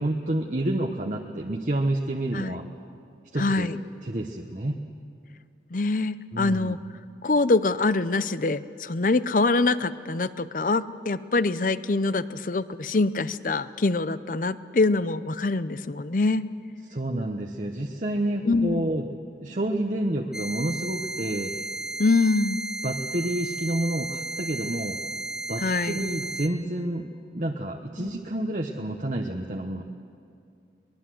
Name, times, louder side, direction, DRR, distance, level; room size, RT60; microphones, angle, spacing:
voice 1, 0.0-2.6 3.3-3.7 4.0-4.8 6.3-6.8 16.9-19.1 19.4-21.5 22.8-25.0 25.5-27.1 27.3-29.8, right 1 dB, 45° right, 1 dB, 1.0 m, -29 dB
voice 2, 3.4-3.8 5.7-6.8 7.2-16.5 18.4-18.9 22.0-22.6 25.6-26.0 28.0-28.1, left 3 dB, 50° left, 15 dB, 0.6 m, -24 dB
sound 1, 20.3-26.5, right 3 dB, 5° right, 0.6 m, -34 dB
23.0 x 20.5 x 7.7 m, 2.4 s
head